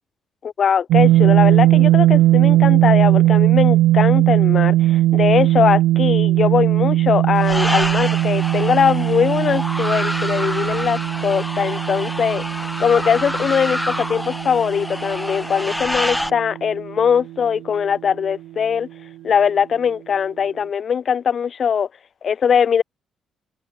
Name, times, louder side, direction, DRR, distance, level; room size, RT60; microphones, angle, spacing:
voice 1, 0.4-12.4 12.8-18.9 19.2-21.9 22.2-22.8, left 7 dB, 50° left, 3.0 m, -20 dB
sound 1, 0.9-16.9, right 15 dB, 90° right, 0.3 m, -18 dB
sound 2, 7.4-16.3, left 1 dB, 5° left, 4.4 m, -27 dB
cardioid pair, 90°, 0 cm